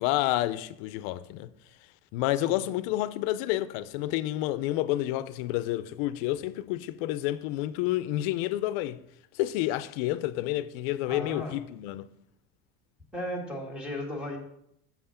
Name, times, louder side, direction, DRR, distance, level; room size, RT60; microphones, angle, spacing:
voice 1, 0.0-1.5 2.1-9.0 9.3-12.1, left 15 dB, 65° left, 0.5 m, -29 dB
voice 2, 11.1-11.5 13.1-14.4, left 1 dB, 5° right, 1.4 m, -35 dB
7.1 x 5.8 x 5.6 m
cardioid pair, 175°, 31 cm